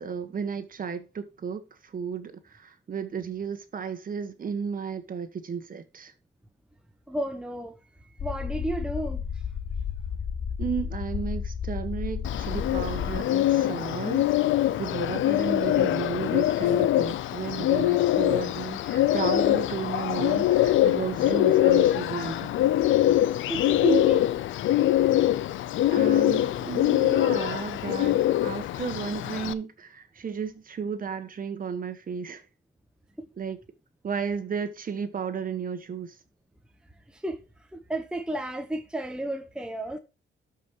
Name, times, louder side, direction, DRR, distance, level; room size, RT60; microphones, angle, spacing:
voice 1, 0.0-6.1 10.6-14.4 14.8-22.5 25.9-32.4 33.4-33.6 34.0-36.2, right 6 dB, 45° right, 1.5 m, -33 dB
voice 2, 7.1-7.8 8.2-9.2 23.5-24.3 33.2-33.3 37.1-37.4 37.7-40.0, right 2 dB, 5° right, 1.1 m, -31 dB
sound 1, 8.2-13.2, left 7 dB, 40° left, 0.8 m, -32 dB
Bird, 12.2-29.5, left 13 dB, 75° left, 0.6 m, -23 dB
13.0 x 5.5 x 3.1 m
cardioid pair, 90°, 20 cm